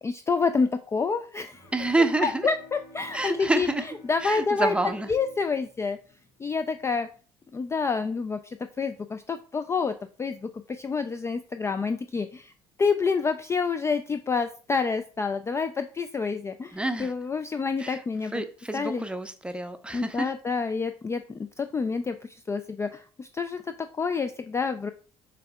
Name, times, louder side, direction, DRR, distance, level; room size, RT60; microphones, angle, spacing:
voice 1, 0.0-1.7 2.2-3.7 4.1-4.7 5.1-6.0 6.4-7.1 7.5-12.5 12.8-18.3 18.7-19.0 19.9-24.9, left 4 dB, 20° left, 9 dB, 0.3 m, -28 dB
Bowed string instrument, 1.5-7.1, left 1 dB, 60° left, 1.8 m, -51 dB
voice 2, 1.7-2.5 3.1-3.9 4.2-5.1 16.7-17.1 17.8-18.0 18.3-20.3, right 2 dB, 5° right, 9 dB, 0.7 m, -28 dB
6.7 x 3.5 x 2.2 m, 0.39 s
figure-of-eight pair, 55°, 14 cm